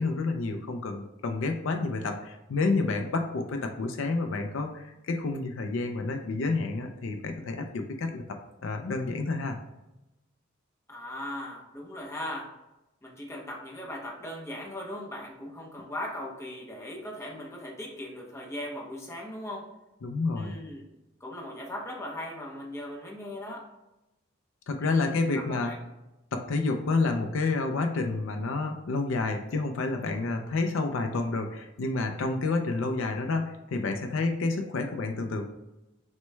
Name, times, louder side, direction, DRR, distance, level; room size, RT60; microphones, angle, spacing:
voice 1, 0.0-9.6 20.0-20.5 24.7-25.7 26.3-35.4, left 3 dB, 70° left, 5 dB, 0.4 m, -29 dB
voice 2, 10.9-12.5 13.0-19.7 20.3-20.9 21.2-23.7 24.8-25.8, left 1 dB, 15° left, -1 dB, 0.7 m, -39 dB
6.0 x 2.2 x 3.3 m, 0.97 s
head